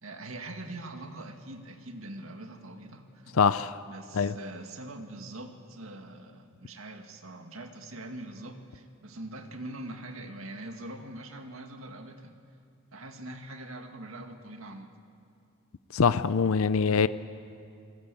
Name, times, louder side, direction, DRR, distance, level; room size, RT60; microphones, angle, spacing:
voice 1, 0.0-3.4 3.9-12.3 12.9-14.9, right 1 dB, 75° right, 5 dB, 2.1 m, -43 dB
voice 2, 3.4-3.7 4.2-4.3 15.9-17.1, left 6 dB, 75° left, 14 dB, 0.5 m, -23 dB
26.0 x 19.5 x 8.4 m, 2.5 s
head